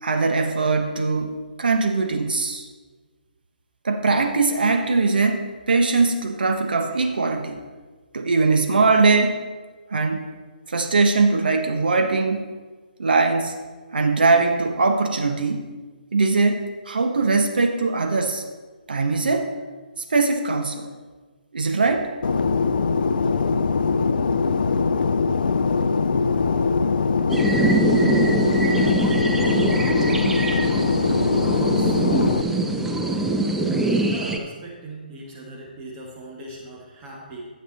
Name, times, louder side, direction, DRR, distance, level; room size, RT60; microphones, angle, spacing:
voice 1, 0.0-2.7 3.8-7.6 8.1-9.4 9.9-10.3 10.7-12.4 13.0-13.6 13.9-15.6 16.1-18.4 18.9-19.5 20.1-20.9 21.5-22.1, right 3 dB, 70° right, 4 dB, 1.1 m, -21 dB
Fixed-wing aircraft airplane, 22.2-32.4, left 5 dB, 65° left, 0.5 m, -22 dB
sound 1, 27.3-34.4, right 2 dB, 5° right, 0.6 m, -23 dB
voice 2, 34.1-37.4, right 2 dB, 25° right, -2 dB, 1.7 m, -39 dB
12.0 x 8.3 x 4.1 m, 1.4 s
figure-of-eight pair, 140°, 5 cm